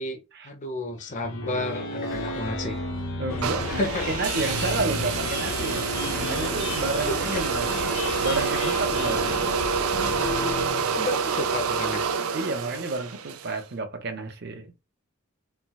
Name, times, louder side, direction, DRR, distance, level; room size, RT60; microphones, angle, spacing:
voice 1, 0.0-2.8 3.7-4.0 7.1-7.4 10.9-12.1, left 2 dB, 35° left, 0.6 m, -32 dB
sound 1, 1.0-11.8, left 2 dB, 60° left, 1.0 m, -34 dB
voice 2, 3.2-7.7 8.2-9.3 12.3-14.7, right 3 dB, 50° right, 0.7 m, -30 dB
sound 2, 3.3-10.7, left 3 dB, 85° left, 0.6 m, -35 dB
sound 3, 3.4-13.6, right 6 dB, 90° right, 0.5 m, -28 dB
4.3 x 2.2 x 2.2 m
head